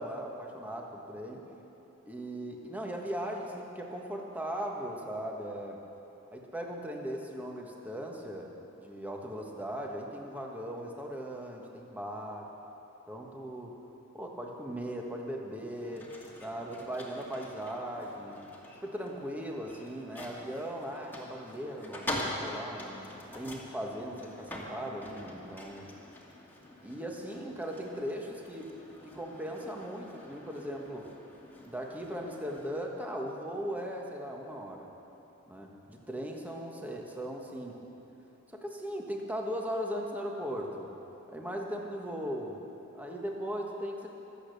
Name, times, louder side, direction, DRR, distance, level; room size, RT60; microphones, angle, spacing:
voice 1, 0.0-1.5 2.1-5.8 6.3-8.5 8.8-12.5 13.1-13.8 14.1-16.1 16.4-18.4 18.8-25.9 26.8-28.8 29.0-31.1 31.6-34.9 35.5-37.9 38.5-40.9 41.3-42.6 42.9-44.1, equal, 5° right, 0 dB, 1.5 m, -38 dB
sound 1, 15.7-32.8, left 1 dB, 10° left, 2.0 m, -44 dB
24.5 x 8.4 x 6.9 m, 3.0 s
head